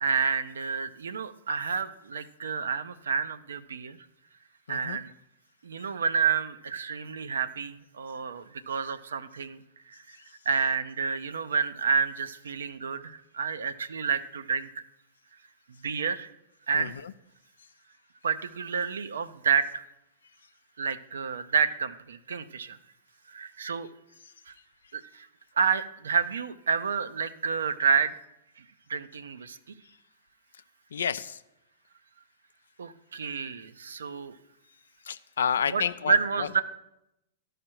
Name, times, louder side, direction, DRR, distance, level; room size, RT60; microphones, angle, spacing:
voice 1, 0.0-4.0 4.7-5.1 5.6-10.0 10.5-14.7 15.8-16.3 16.7-16.9 18.2-19.8 20.8-22.8 23.3-23.9 24.5-24.6 24.9-25.3 25.6-28.1 28.9-29.7 32.8-34.4 35.6-36.6, right 6 dB, 80° right, 12 dB, 0.5 m, -29 dB
voice 2, 16.7-17.1 30.9-31.4 35.1-36.6, left 7 dB, 80° left, 14 dB, 0.4 m, -30 dB
12.5 x 5.0 x 4.4 m, 0.85 s
hypercardioid pair, 110°, 0 cm